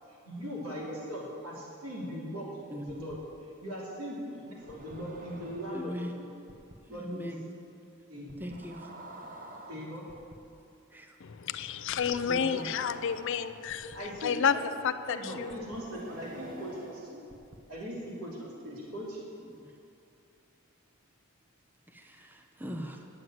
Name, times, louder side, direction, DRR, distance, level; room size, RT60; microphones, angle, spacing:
voice 1, 0.1-3.2 3.6-6.2 6.9-7.3 8.1-8.5 9.7-10.1 13.8-14.6 15.1-17.2 17.7-19.2, equal, 85° right, -5 dB, 3.4 m, -40 dB
voice 2, 2.7-3.0 5.7-6.1 6.8-7.4 8.4-8.9 10.9-11.2 12.3-12.7 19.4-19.8 21.9-23.1, equal, 10° right, 3 dB, 0.6 m, -40 dB
sound 1, 2.9-3.1 4.4-6.0 6.5-6.7 8.3-10.3 11.9-14.0 15.5-17.6, right 1 dB, 40° right, 1.0 m, -48 dB
voice 3, 11.2-14.6 14.8-15.7, left 7 dB, 60° left, 13 dB, 0.4 m, -30 dB
9.2 x 7.9 x 9.1 m, 2.6 s
head